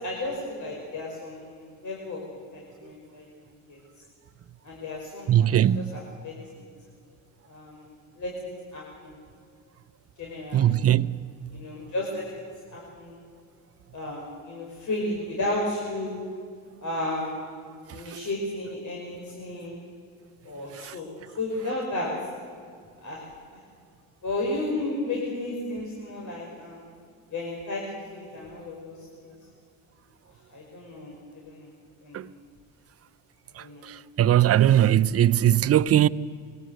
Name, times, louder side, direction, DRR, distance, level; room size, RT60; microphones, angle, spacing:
voice 1, 0.0-3.3 3.7-3.8 4.6-6.3 7.5-7.9 8.2-9.2 10.2-10.9 11.5-12.4 12.7-13.2 13.9-16.2 16.8-17.4 17.9-19.8 20.4-21.1 21.4-22.1 23.0-23.2 23.5-23.6 24.2-26.8 27.3-27.8 28.1-29.3 30.5-31.1 31.4-31.7 32.0-32.2 33.6-33.8, left 2 dB, 50° left, 5.4 m, -33 dB
voice 2, 5.3-5.9 10.5-11.1 20.8-20.9 32.1-32.2 34.2-36.1, right 11 dB, 40° right, 0.7 m, -19 dB
22.0 x 17.5 x 7.9 m
supercardioid pair, 75°, 38 cm